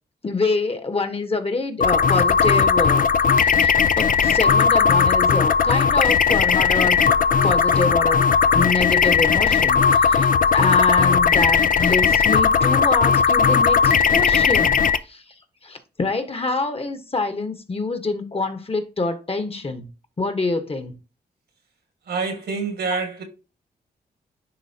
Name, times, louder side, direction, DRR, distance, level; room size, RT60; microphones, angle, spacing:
voice 1, 0.2-3.1 3.3-7.1 7.4-8.3 8.5-15.2 15.6-19.9 20.2-21.0 22.9-23.1, left 3 dB, 35° left, 1.2 m, -26 dB
sound 1, 1.8-15.0, left 6 dB, 55° left, 0.5 m, -17 dB
voice 2, 22.1-23.2, right 4 dB, 75° right, 2.1 m, -26 dB
10.0 x 3.5 x 2.8 m
cardioid pair, 65°, 17 cm